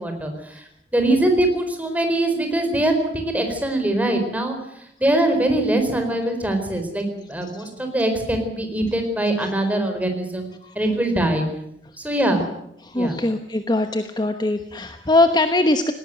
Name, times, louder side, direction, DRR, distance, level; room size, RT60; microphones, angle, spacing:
voice 1, 0.0-10.5 10.7-11.4 12.0-12.4 12.9-13.2, right 1 dB, 10° right, 5 dB, 4.5 m, -22 dB
voice 2, 12.0-12.4 12.8-15.9, left 2 dB, 25° left, 8 dB, 1.1 m, -22 dB
19.0 x 18.0 x 9.3 m, 0.75 s
head